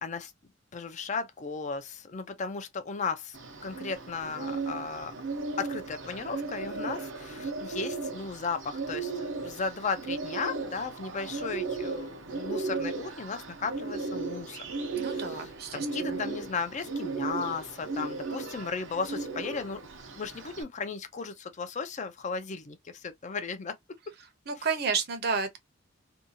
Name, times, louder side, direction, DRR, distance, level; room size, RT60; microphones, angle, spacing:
voice 1, 0.7-3.4 3.6-5.1 5.6-14.7 15.0-19.8 20.1-23.7, left 5 dB, 40° left, 0.4 m, -35 dB
Bird, 3.3-20.6, right 3 dB, 90° right, 0.8 m, -36 dB
voice 2, 14.9-16.2 24.5-25.6, right 5 dB, 55° right, 0.7 m, -31 dB
2.7 x 2.3 x 2.6 m
head